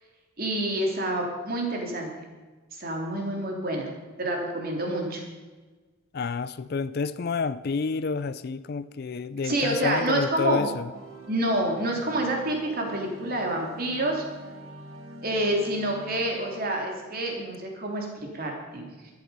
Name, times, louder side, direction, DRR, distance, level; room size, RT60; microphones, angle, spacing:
voice 1, 0.4-2.1 2.7-3.9 4.2-5.2 9.4-10.7 11.3-14.2 15.2-18.9, right 1 dB, 45° right, 1 dB, 3.0 m, -28 dB
voice 2, 6.1-10.9, left 5 dB, 45° left, 16 dB, 0.4 m, -29 dB
sound 1, 10.9-17.8, right 1 dB, 70° right, 1.9 m, -45 dB
13.5 x 12.0 x 5.5 m, 1.3 s
head